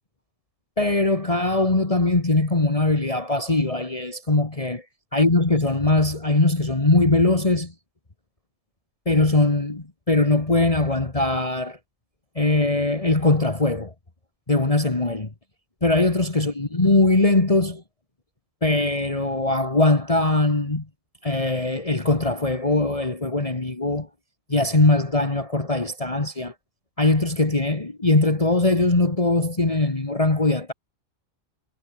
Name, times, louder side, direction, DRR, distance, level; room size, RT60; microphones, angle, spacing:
voice 1, 0.8-4.8 5.1-7.7 9.1-11.8 12.4-13.9 14.5-15.3 15.8-17.8 18.6-20.9 21.2-24.1 24.5-26.5 27.0-30.7, left 2 dB, 25° left, 2.1 m, -21 dB
omnidirectional pair, 1.4 m